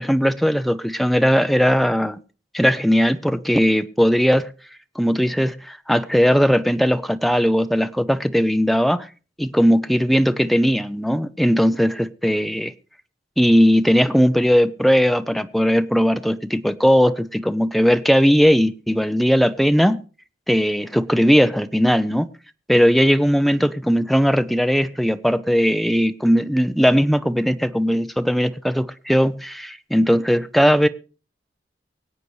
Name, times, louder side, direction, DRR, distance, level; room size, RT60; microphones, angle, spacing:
voice 1, 0.0-2.2 2.5-4.5 5.0-9.1 9.4-12.7 13.4-20.0 20.5-22.3 22.7-30.9, equal, ahead, 0.5 m, -18 dB
24.5 x 8.3 x 3.1 m
head